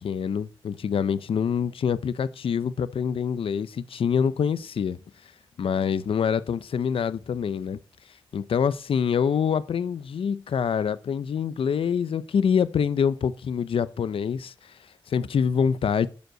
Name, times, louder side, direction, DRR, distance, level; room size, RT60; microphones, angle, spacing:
voice 1, 0.0-5.0 5.6-7.8 8.3-14.8 15.1-16.1, left 7 dB, 75° left, 0.7 m, -25 dB
11.0 x 5.3 x 7.8 m
cardioid pair, 85°, 9 cm